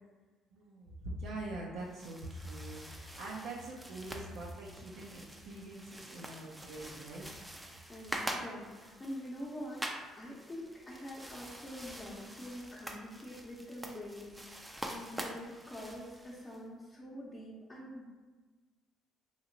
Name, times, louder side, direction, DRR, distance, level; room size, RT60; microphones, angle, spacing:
voice 1, 0.5-7.3, right 2 dB, 75° right, -3 dB, 0.4 m, -44 dB
sound 1, 1.8-16.6, right 1 dB, 10° right, 0.4 m, -46 dB
voice 2, 7.9-18.1, equal, 25° left, -6 dB, 0.7 m, -45 dB
2.8 x 2.8 x 2.6 m, 1.3 s
hypercardioid pair, 65°, 0 cm